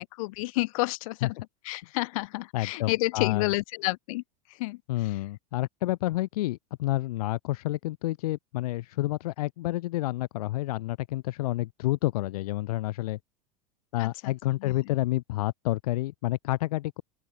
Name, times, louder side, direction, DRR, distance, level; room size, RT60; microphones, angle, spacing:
voice 1, 0.0-1.4 1.6-4.2 4.5-4.8 14.0-14.3 14.6-14.8, left 22 dB, 65° left, 4.6 m, -30 dB
voice 2, 2.5-3.5 4.9-13.2 13.9-17.0, left 17 dB, 80° left, 1.8 m, -29 dB
open air
supercardioid pair, 160°, 19 cm